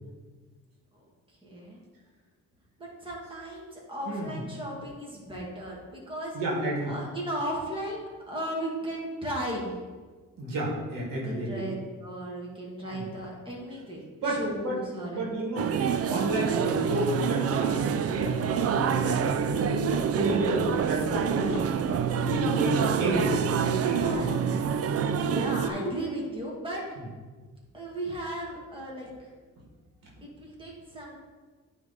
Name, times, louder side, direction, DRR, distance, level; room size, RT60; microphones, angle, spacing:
voice 1, 1.4-1.8 2.8-6.3 6.8-9.8 11.2-15.3 22.5-22.9 24.0-24.3 25.2-26.8 27.7-29.3 30.2-31.2, right 1 dB, 15° right, -4 dB, 2.0 m, -36 dB
voice 2, 4.1-4.4 6.3-6.9 10.4-11.7 12.9-13.1 14.2-14.8 15.1-19.7 20.1-21.7 22.3-23.4 23.6-24.2 24.8-24.9 27.0-27.1 30.2-30.3, right 1 dB, 85° right, -3 dB, 1.8 m, -31 dB
sound 1, 15.6-25.7, right 8 dB, 50° right, 0.4 m, -27 dB
sound 2, 17.8-24.3, left 5 dB, 75° left, 0.9 m, -39 dB
9.3 x 3.5 x 4.0 m, 1.4 s
cardioid pair, 95°, 33 cm